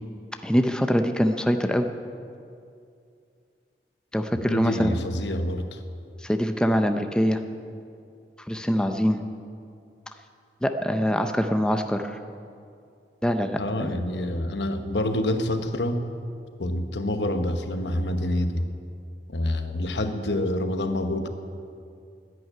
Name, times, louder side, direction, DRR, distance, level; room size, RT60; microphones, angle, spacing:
voice 1, 0.4-1.9 4.1-4.9 6.2-7.4 8.5-9.2 10.6-12.2 13.2-14.0, equal, 5° left, 6 dB, 0.5 m, -24 dB
voice 2, 4.4-5.8 13.6-16.0 16.6-18.7 19.3-21.3, left 1 dB, 80° left, 8 dB, 1.0 m, -27 dB
10.5 x 9.4 x 9.9 m, 2.4 s
head